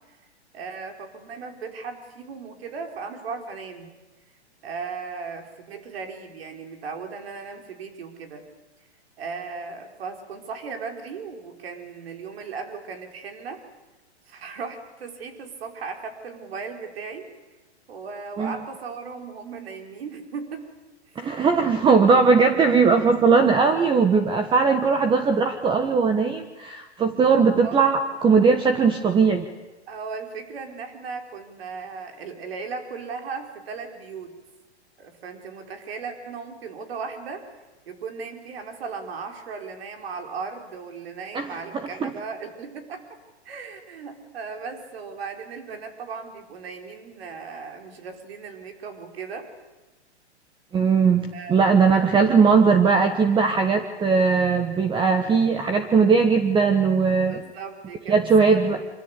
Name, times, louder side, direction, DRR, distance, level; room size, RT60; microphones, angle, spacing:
voice 1, 0.5-3.9 4.6-8.5 9.2-13.6 14.3-17.3 17.9-20.7 21.1-21.2 25.1-25.2 27.6-27.8 29.9-34.3 35.0-37.5 37.9-43.0 43.4-49.5 51.3-52.0 52.4-52.7 57.1-58.9, right 5 dB, 60° right, 5 dB, 5.1 m, -37 dB
voice 2, 21.1-29.5 41.3-41.5 42.0-42.1 50.7-57.4 58.1-58.8, right 5 dB, 15° right, 8 dB, 1.4 m, -19 dB
26.0 x 25.0 x 8.5 m, 1.1 s
hypercardioid pair, 130°, 34 cm